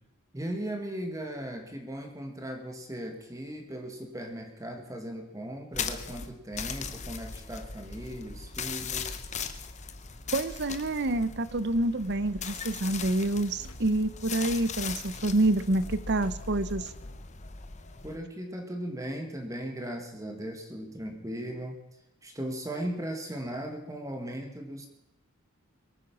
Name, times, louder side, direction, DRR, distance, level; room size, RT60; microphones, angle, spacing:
voice 1, 0.3-9.2 18.0-21.8 22.2-24.9, right 1 dB, 15° right, 4 dB, 1.9 m, -37 dB
sound 1, 5.7-18.2, left 6 dB, 30° left, 0.9 m, -39 dB
voice 2, 10.3-16.9, right 2 dB, 50° right, 15 dB, 0.8 m, -27 dB
sound 2, 12.1-17.2, left 1 dB, 85° left, 1.4 m, -49 dB
22.5 x 9.2 x 6.1 m, 0.86 s
head